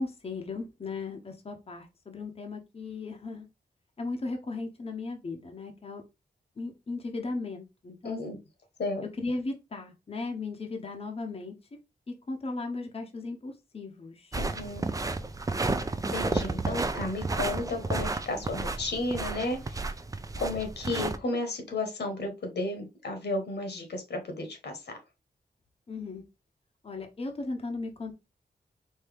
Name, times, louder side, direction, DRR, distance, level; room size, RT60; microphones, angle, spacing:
voice 1, 0.0-3.5 4.0-6.0 6.6-8.2 9.2-11.5 12.3-14.4 25.9-26.2 26.8-28.1, left 3 dB, 35° left, 3 dB, 0.7 m, -36 dB
voice 2, 8.0-8.4 8.8-9.0 14.4-14.9 16.1-19.9 20.4-24.8, left 2 dB, 85° left, 5 dB, 1.3 m, -33 dB
sound 1, 14.3-21.2, right 3 dB, 20° right, 0.4 m, -32 dB
4.5 x 2.7 x 3.4 m, 0.25 s
wide cardioid pair, 110°, 17 cm